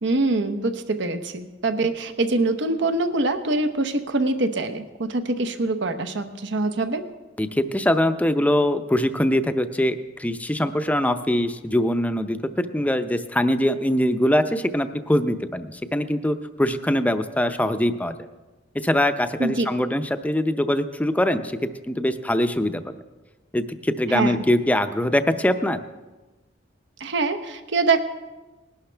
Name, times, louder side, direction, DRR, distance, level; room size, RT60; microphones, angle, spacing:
voice 1, 0.0-7.1 19.4-19.7 24.1-24.4 27.0-28.0, right 3 dB, 65° right, 9 dB, 0.9 m, -24 dB
voice 2, 7.4-18.1 18.7-21.6 21.9-22.8 23.5-25.8, left 1 dB, 10° left, 10 dB, 0.6 m, -23 dB
20.0 x 11.5 x 3.4 m, 1.2 s
head